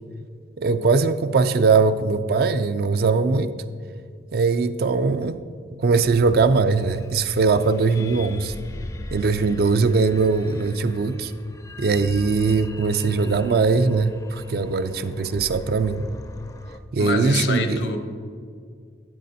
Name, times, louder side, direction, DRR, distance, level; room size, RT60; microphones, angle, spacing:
voice 1, 0.6-3.6 4.3-5.4 5.8-8.5 9.1-11.3 11.8-16.1 16.9-17.8, right 4 dB, 55° right, 0.4 m, -20 dB
sound 1, 6.0-16.8, left 1 dB, 20° left, 0.4 m, -39 dB
voice 2, 17.0-18.0, left 3 dB, 75° left, 0.8 m, -26 dB
12.5 x 8.3 x 2.7 m
head